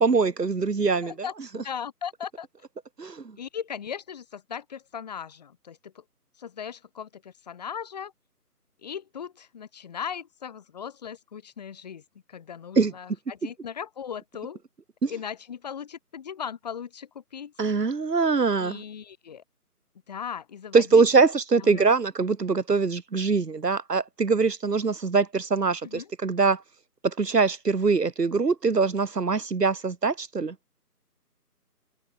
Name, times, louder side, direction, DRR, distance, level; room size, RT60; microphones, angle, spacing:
voice 1, 0.0-1.1 3.0-3.2 12.8-12.9 15.0-15.1 17.6-18.8 20.7-26.6 27.0-30.5, right 4 dB, 80° right, 1.7 m, -23 dB
voice 2, 1.0-2.5 3.4-6.0 6.4-8.1 8.8-12.0 12.3-14.6 15.1-17.5 18.6-19.4 20.1-21.1 21.6-21.9 25.8-26.1, left 8 dB, 25° left, 5.4 m, -38 dB
figure-of-eight pair, 165°, 47 cm